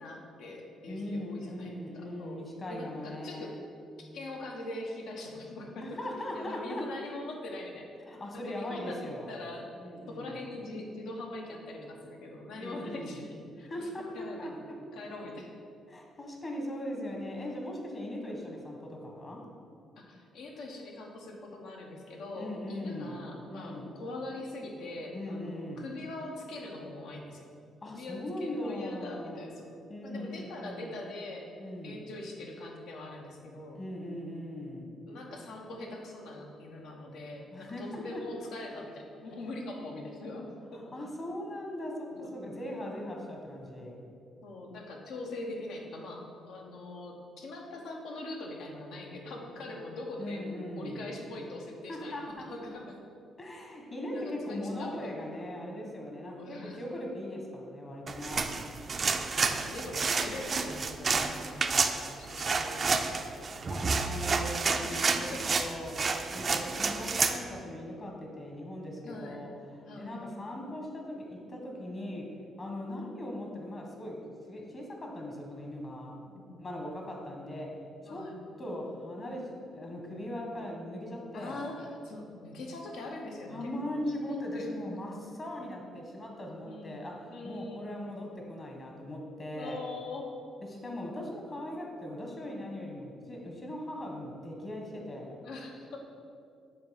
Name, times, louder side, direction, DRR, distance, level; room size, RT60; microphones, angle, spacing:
voice 1, 0.0-3.5 4.0-6.0 6.3-7.9 8.5-9.0 9.3-9.7 10.1-14.6 14.9-15.5 18.4-18.6 20.0-27.4 27.9-29.7 30.0-33.8 35.1-40.8 44.4-50.4 50.7-53.0 54.1-55.2 56.3-56.8 58.5-63.6 64.7-65.4 69.0-69.4 69.9-70.3 76.2-76.6 78.0-78.4 81.3-84.0 84.3-85.4 86.6-87.0 87.3-87.9 89.6-90.3 95.4-96.0, left 2 dB, 80° left, 0 dB, 0.9 m, -42 dB
voice 2, 0.9-3.6 5.8-6.8 8.1-9.3 9.8-10.4 12.6-13.2 13.6-14.7 15.9-19.4 22.4-23.9 25.1-25.9 27.8-29.5 29.9-30.9 31.6-32.0 33.7-34.9 37.5-38.2 40.7-44.0 50.2-51.0 51.9-52.5 53.4-58.5 63.7-69.5 70.0-72.3 72.6-74.2 74.5-76.2 76.6-77.7 78.0-78.3 78.6-81.6 83.5-89.8 90.6-95.4, left 1 dB, 35° left, 0 dB, 1.2 m, -39 dB
sound 1, 58.1-67.4, right 4 dB, 40° right, 0.4 m, -30 dB
7.4 x 2.7 x 5.6 m, 2.5 s
cardioid pair, 90°, 0 cm